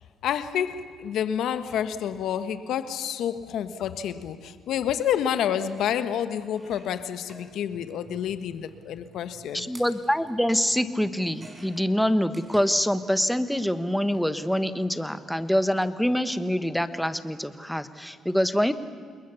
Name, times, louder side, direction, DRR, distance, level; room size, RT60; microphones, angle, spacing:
voice 1, 0.2-9.7, left 9 dB, 80° left, 11 dB, 1.4 m, -29 dB
sound 1, 6.0-6.1 6.5-13.2 13.5-14.3 15.3-15.5 15.7-15.8, right 1 dB, 25° right, 5.8 m, -52 dB
voice 2, 9.5-18.7, equal, ahead, 11 dB, 1.3 m, -25 dB
28.5 x 21.5 x 7.1 m, 2.1 s
cardioid pair, 90°, 0 cm